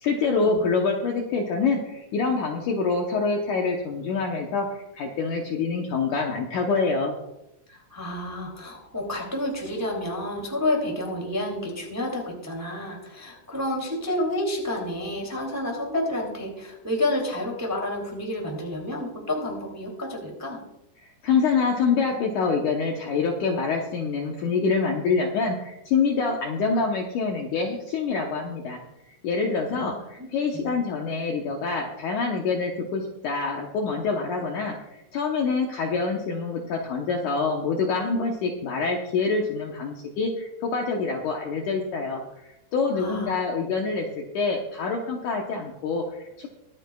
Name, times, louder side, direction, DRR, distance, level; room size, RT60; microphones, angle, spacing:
voice 1, 0.0-7.2 21.2-28.8 29.1-34.7 35.1-46.5, left 4 dB, 70° left, 1 dB, 2.0 m, -26 dB
voice 2, 7.7-20.6 29.7-29.9 30.2-30.3 30.5-30.7 43.0-43.3, left 1 dB, 5° right, 0 dB, 1.7 m, -30 dB
23.5 x 9.3 x 2.3 m, 0.89 s
omnidirectional pair, 4.6 m